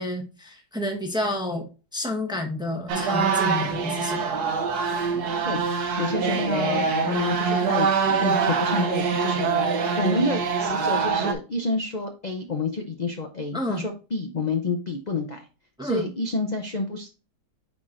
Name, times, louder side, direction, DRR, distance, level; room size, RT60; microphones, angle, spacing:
voice 1, 0.0-4.4 13.5-13.9 15.8-16.1, left 1 dB, 5° right, 2 dB, 0.8 m, -30 dB
sound 1, 2.9-11.3, right 5 dB, 70° right, 1.5 m, -24 dB
voice 2, 6.0-9.5 10.0-15.5 15.8-17.1, left 2 dB, 45° left, 4 dB, 0.5 m, -29 dB
9.2 x 4.2 x 2.5 m, 0.33 s
omnidirectional pair, 1.8 m